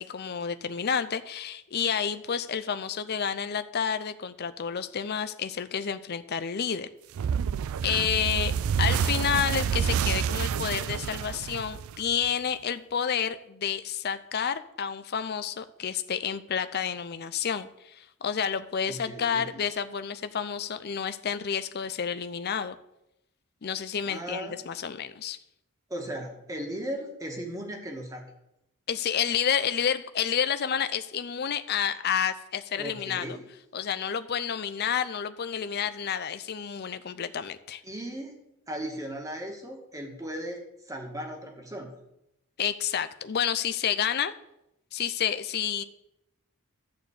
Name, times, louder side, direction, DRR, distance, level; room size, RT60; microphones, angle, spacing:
voice 1, 0.0-6.9 7.8-22.8 23.6-25.4 28.9-33.4 33.7-37.8 42.6-44.3 44.9-45.8, left 7 dB, 45° left, 12 dB, 0.5 m, -30 dB
sound 1, 7.2-12.3, right 7 dB, 70° right, 0.3 m, -28 dB
voice 2, 18.9-19.6 24.0-24.6 25.9-28.3 32.8-33.4 37.8-38.4 38.7-41.9, right 1 dB, 15° right, 1 dB, 1.6 m, -37 dB
12.5 x 4.3 x 8.1 m, 0.85 s
head